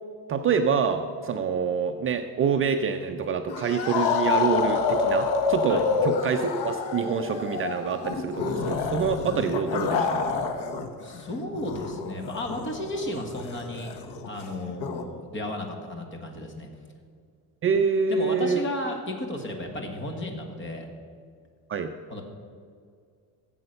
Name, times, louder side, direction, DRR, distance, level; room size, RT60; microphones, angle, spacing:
voice 1, 0.3-10.3 17.6-18.6 21.7-21.9, right 6 dB, 35° right, 5 dB, 0.5 m, -26 dB
sound 1, 3.5-10.9 11.1-15.0, left 5 dB, 85° left, 1.3 m, -28 dB
voice 2, 11.0-13.9 14.2-16.7 18.1-20.9 22.1-22.2, left 1 dB, 30° left, 3 dB, 1.7 m, -34 dB
15.0 x 7.9 x 6.6 m, 2.2 s
cardioid pair, 175°, 39 cm